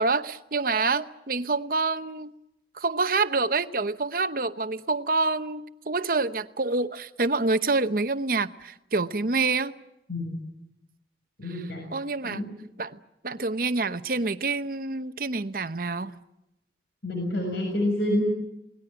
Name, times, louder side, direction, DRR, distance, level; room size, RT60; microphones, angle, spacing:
voice 1, 0.0-2.3 2.7-9.7 11.9-12.4 12.8-13.0 13.2-16.1, right 3 dB, 50° right, 0.9 m, -27 dB
voice 2, 11.4-11.8 12.2-12.5 17.0-18.2, left 1 dB, 70° left, 6.6 m, -28 dB
28.5 x 19.5 x 8.9 m
head